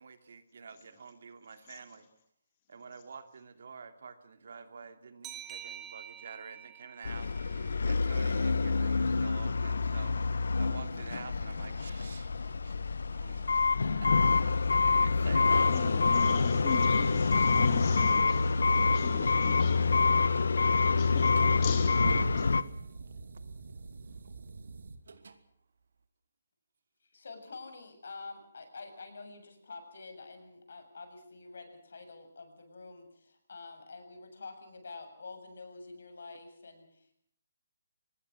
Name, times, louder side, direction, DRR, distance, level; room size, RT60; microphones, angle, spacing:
voice 1, 0.0-2.1 2.7-12.8 13.1-13.6 14.0-15.8, right 5 dB, 55° right, 2.8 m, -48 dB
sound 1, 5.2-8.6, right 9 dB, 10° right, 2.2 m, -48 dB
sound 2, 7.0-22.6, left 4 dB, 85° left, 1.5 m, -27 dB
voice 2, 15.6-20.2 20.9-22.6, left 7 dB, 25° left, 3.1 m, -39 dB
sound 3, 20.3-20.5 21.1-25.4, right 4 dB, 70° right, 2.7 m, -43 dB
voice 3, 27.1-37.1, left 3 dB, 70° left, 7.5 m, -47 dB
25.0 x 20.5 x 6.3 m
hypercardioid pair, 170°, 0 cm